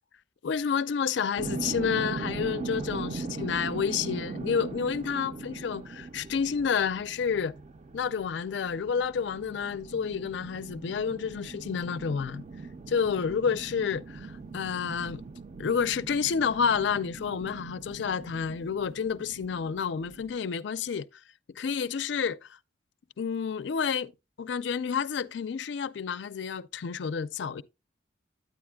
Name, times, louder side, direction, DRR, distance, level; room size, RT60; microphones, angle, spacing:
voice 1, 0.4-7.5 7.9-12.4 12.9-15.2 15.6-21.1 21.5-22.5 23.2-24.1 24.4-27.6, left 6 dB, 65° left, 0.4 m, -30 dB
sound 1, 1.4-20.3, right 4 dB, 35° right, 0.4 m, -40 dB
9.4 x 9.2 x 2.2 m
head